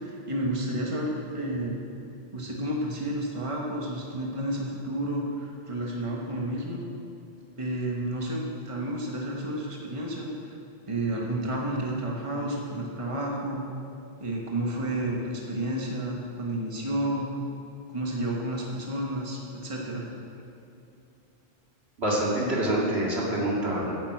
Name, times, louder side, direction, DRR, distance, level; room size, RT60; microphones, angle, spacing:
voice 1, 0.0-1.8 2.3-6.8 7.6-10.6 10.9-13.6 14.2-17.3 17.9-20.1, right 1 dB, 30° right, -2 dB, 1.5 m, -31 dB
voice 2, 22.0-23.9, right 1 dB, 85° right, -5 dB, 2.7 m, -26 dB
9.9 x 7.6 x 8.5 m, 2.7 s
omnidirectional pair, 1.1 m